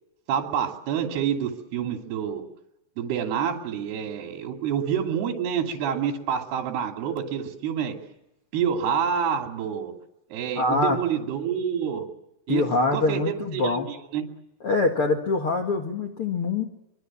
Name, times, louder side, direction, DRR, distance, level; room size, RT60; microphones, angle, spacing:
voice 1, 0.3-2.4 3.0-7.9 8.5-9.9 10.3-12.1 12.5-14.3, right 8 dB, 60° right, 3 dB, 4.4 m, -28 dB
voice 2, 10.5-11.0 12.5-13.9 14.6-16.6, left 3 dB, 70° left, 3 dB, 1.3 m, -24 dB
24.5 x 24.0 x 7.5 m, 0.88 s
omnidirectional pair, 5.8 m